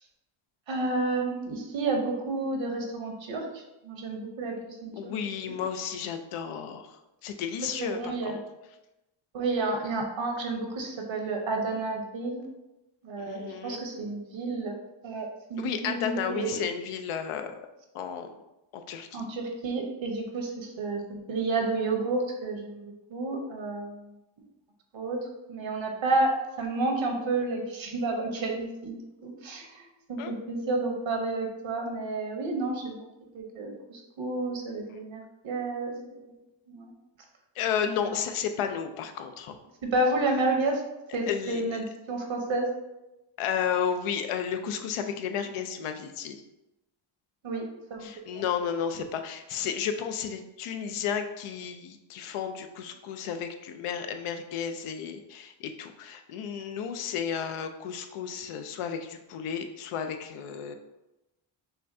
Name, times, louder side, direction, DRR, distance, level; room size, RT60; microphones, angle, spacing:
voice 1, 0.7-5.1 5.5-5.6 7.8-8.4 9.3-12.4 13.0-14.8 15.0-16.6 19.1-24.1 24.9-25.2 25.5-29.0 29.2-33.1 33.3-36.0 36.3-36.4 36.7-36.9 38.1-38.2 39.8-40.8 41.1-42.7 47.4-48.4, right 2 dB, 65° right, 2 dB, 1.0 m, -31 dB
voice 2, 4.9-8.4 13.2-13.8 15.6-17.5 17.9-18.3 18.7-19.2 30.2-30.3 37.5-39.6 41.3-41.8 43.4-46.4 48.0-60.7, left 7 dB, 85° left, 7 dB, 0.6 m, -33 dB
5.6 x 2.3 x 2.7 m, 0.96 s
cardioid pair, 75°, 49 cm